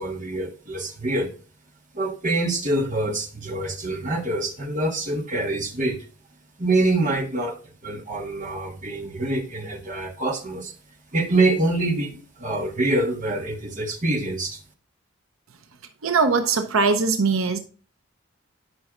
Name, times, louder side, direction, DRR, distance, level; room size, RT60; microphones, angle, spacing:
voice 1, 0.0-1.3 1.9-6.0 6.6-7.6 7.8-10.7 11.1-14.6, right 2 dB, 35° right, 1.3 m, -25 dB
voice 2, 16.0-17.6, right 4 dB, 80° right, 0.7 m, -21 dB
11.0 x 5.4 x 2.5 m
head